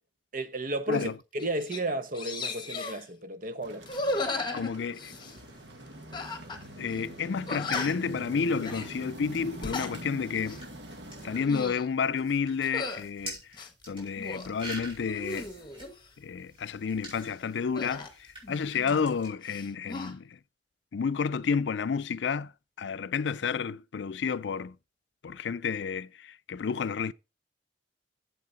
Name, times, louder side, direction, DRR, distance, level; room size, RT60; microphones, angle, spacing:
voice 1, 0.3-3.9, right 1 dB, 50° right, 1.0 m, -33 dB
sound 1, 0.9-1.1 1.4-1.8 2.1-3.0 3.8-5.4 6.1-6.6 6.9-7.0 7.5-8.1 8.6-8.9 9.4-9.9 10.4-10.6 11.3-11.9 12.6-13.0 13.5-14.5 15.0-16.0 17.8-19.2 19.4-20.1, left 2 dB, 25° left, 1.3 m, -36 dB
sound 2, 3.6-11.5, right 1 dB, 80° right, 1.9 m, -44 dB
voice 2, 4.5-5.1 6.8-10.6 11.2-13.4 13.9-15.5 16.2-20.4 20.9-22.5 22.8-24.7 25.2-27.1, left 6 dB, 80° left, 0.4 m, -30 dB
sound 3, 5.2-19.3, right 1 dB, 30° right, 5.5 m, -49 dB
8.5 x 7.6 x 3.9 m
head